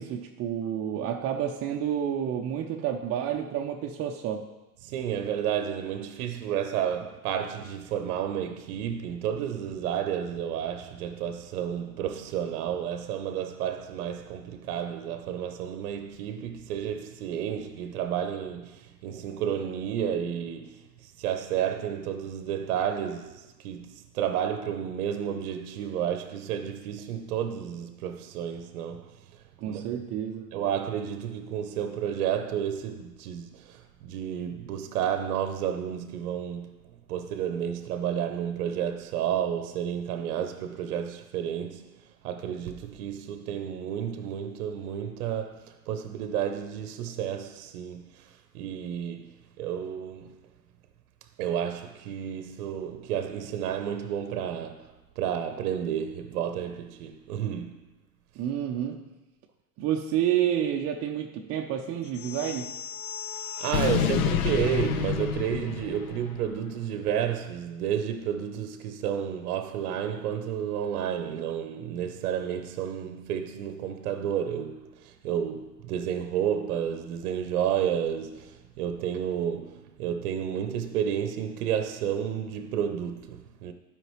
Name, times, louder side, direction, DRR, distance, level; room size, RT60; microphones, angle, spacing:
voice 1, 0.0-4.5 29.6-30.5 58.4-59.0 59.8-62.7, right 10 dB, 30° right, 0.6 m, -29 dB
voice 2, 4.8-30.0 30.5-50.4 51.4-57.9 63.6-83.7, right 9 dB, 65° right, 0.8 m, -31 dB
sound 1, 62.2-66.5, left 8 dB, 60° left, 0.7 m, -30 dB
12.0 x 5.0 x 3.2 m
hypercardioid pair, 100°, 48 cm